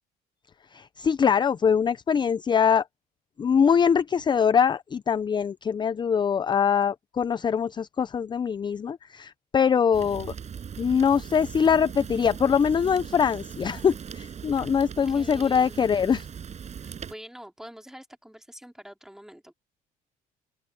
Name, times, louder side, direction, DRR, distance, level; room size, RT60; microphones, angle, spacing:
voice 1, 0.7-2.8 3.4-10.3 10.8-16.3, left 7 dB, 25° left, 0.5 m, -23 dB
Fire, 9.9-17.1, right 7 dB, 40° right, 6.5 m, -39 dB
voice 2, 14.6-15.8 16.7-19.5, equal, 5° right, 3.1 m, -46 dB
open air
cardioid pair, 110°, 17 cm